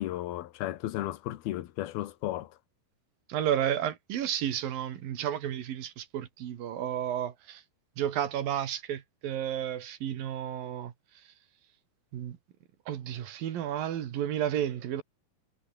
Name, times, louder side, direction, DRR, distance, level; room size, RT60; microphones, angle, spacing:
voice 1, 0.0-2.5, left 14 dB, 90° left, 3.0 m, -34 dB
voice 2, 3.3-7.6 8.0-10.9 12.1-12.4 12.9-15.0, right 10 dB, 70° right, 3.5 m, -32 dB
omnidirectional pair, 4.4 m